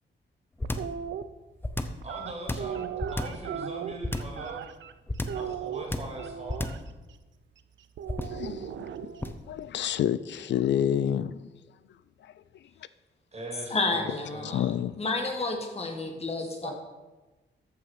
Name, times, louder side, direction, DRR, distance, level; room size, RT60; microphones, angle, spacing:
sound 1, 0.6-1.0 1.6-2.1 2.5-3.5 4.0-4.4 5.1-5.5 5.9-6.2 6.5-6.9 8.1-8.5 9.2-9.5, left 2 dB, 10° left, 0.7 m, -31 dB
sound 2, 0.6-1.2 2.0-4.9 5.3-6.8 8.0-9.3, right 9 dB, 90° right, 0.6 m, -37 dB
voice 1, 2.0-4.7 5.3-6.7 13.3-14.6 16.4-16.7, right 2 dB, 35° right, 2.8 m, -41 dB
voice 2, 8.2-8.9 9.5-11.4 12.2-12.3 14.4-15.0, left 10 dB, 75° left, 0.4 m, -28 dB
voice 3, 13.7-16.7, left 3 dB, 35° left, 1.7 m, -31 dB
14.0 x 5.8 x 5.6 m
wide cardioid pair, 140°, 19 cm